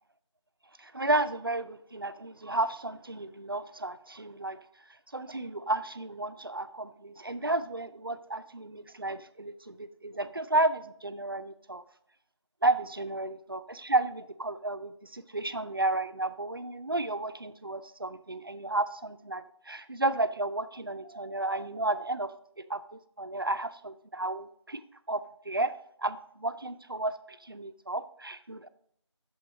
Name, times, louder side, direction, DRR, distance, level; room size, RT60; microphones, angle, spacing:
voice 1, 0.8-4.6 5.1-11.8 12.6-24.8 25.1-25.2 25.5-28.7, right 2 dB, 50° right, 12 dB, 0.4 m, -32 dB
6.9 x 4.7 x 4.2 m, 0.68 s
figure-of-eight pair, 170°, 16 cm